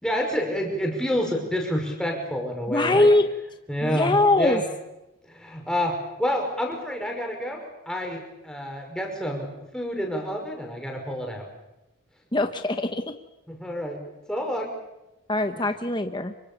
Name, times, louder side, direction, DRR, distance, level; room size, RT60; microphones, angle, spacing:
voice 1, 0.0-3.1 3.7-4.6 5.3-9.5 9.7-11.5 13.5-14.0 14.3-14.7, equal, 5° left, 1 dB, 5.8 m, -28 dB
voice 2, 2.7-3.3 3.8-4.6 12.3-13.1 15.3-16.3, left 2 dB, 20° left, 7 dB, 1.1 m, -22 dB
26.5 x 24.5 x 7.1 m, 0.95 s
head